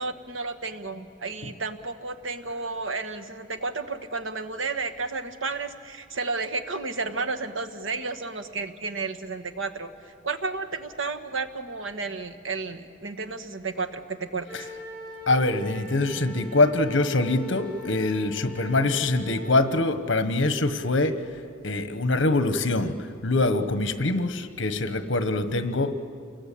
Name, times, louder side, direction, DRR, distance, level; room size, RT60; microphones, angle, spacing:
voice 1, 0.0-9.9 10.2-14.7, right 3 dB, 85° right, 8 dB, 1.5 m, -32 dB
Wind instrument woodwind instrument, 14.4-19.6, left 4 dB, 10° right, 8.0 m, -41 dB
voice 2, 15.3-21.2 21.6-22.9 23.2-25.9, left 2 dB, 70° left, 10 dB, 1.4 m, -24 dB
29.5 x 21.0 x 8.6 m, 2.3 s
head